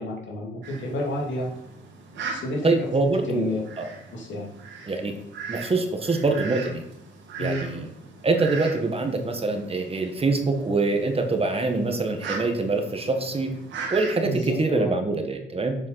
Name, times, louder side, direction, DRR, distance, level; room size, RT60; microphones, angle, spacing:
voice 1, 0.0-1.5 2.3-2.9 3.2-3.6 4.1-4.5 7.4-7.7 14.2-14.9, left 1 dB, 70° left, -2 dB, 3.1 m, -30 dB
Fowl, 0.6-14.3, right 4 dB, 70° right, 2.2 m, -39 dB
voice 2, 2.6-3.5 3.8-3.9 4.9-5.1 5.5-6.8 7.4-7.9 8.2-13.5 13.9-15.8, right 3 dB, 30° right, 5 dB, 1.6 m, -24 dB
7.9 x 7.4 x 5.8 m, 0.80 s
cardioid pair, 90°, 20 cm